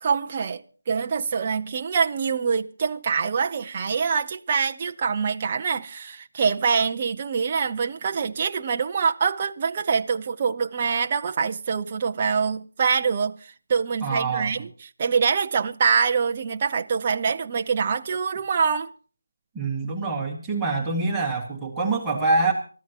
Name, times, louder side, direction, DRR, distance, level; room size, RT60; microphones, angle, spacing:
voice 1, 0.0-14.7 15.0-18.9, right 6 dB, 25° right, 0.7 m, -25 dB
voice 2, 14.0-14.5 19.5-22.5, right 3 dB, 5° right, 2.2 m, -25 dB
24.5 x 14.0 x 3.0 m
figure-of-eight pair, 175°, 0 cm